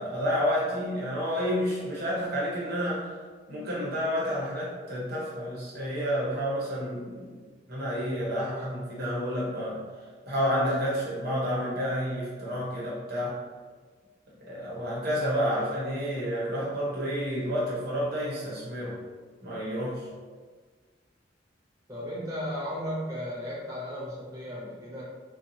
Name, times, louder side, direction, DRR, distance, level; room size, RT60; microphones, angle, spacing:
voice 1, 0.0-3.1 3.5-7.3 7.7-9.8 10.3-13.4 14.4-19.0 19.4-20.1, equal, 55° right, -6 dB, 0.9 m, -30 dB
voice 2, 21.9-25.0, equal, 20° right, -8 dB, 0.4 m, -35 dB
2.7 x 2.3 x 2.7 m, 1.4 s
head